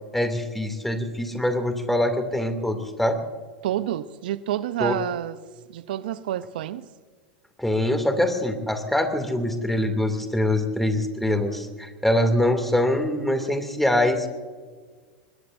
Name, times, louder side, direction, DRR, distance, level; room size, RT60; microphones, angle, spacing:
voice 1, 0.1-3.2 4.8-5.0 7.6-14.3, left 1 dB, 5° left, 2.6 m, -24 dB
voice 2, 3.6-5.4 5.7-6.9, right 12 dB, 65° right, 0.7 m, -28 dB
25.5 x 21.0 x 2.6 m
hypercardioid pair, 95°, 5 cm